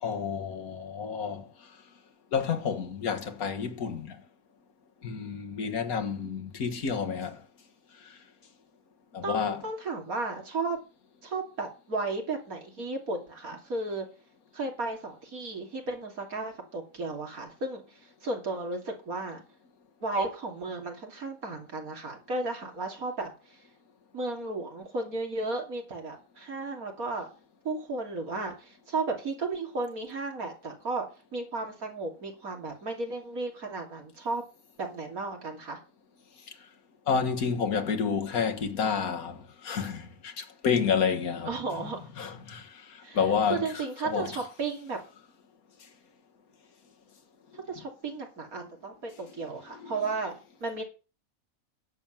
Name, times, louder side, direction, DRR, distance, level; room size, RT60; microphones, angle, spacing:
voice 1, 0.0-1.5 2.3-4.2 5.0-7.4 9.1-9.6 37.1-41.5 42.2-44.4 49.8-49.9, left 6 dB, 85° left, 1.9 m, -30 dB
voice 2, 9.2-10.8 11.2-14.1 14.5-19.4 20.0-23.6 24.1-27.3 27.6-31.1 31.3-34.4 34.8-35.8 41.4-42.0 43.0-43.2 43.5-45.0 47.5-50.3 50.6-50.8, right 3 dB, 85° right, 3.3 m, -34 dB
10.5 x 7.3 x 7.4 m
omnidirectional pair, 1.5 m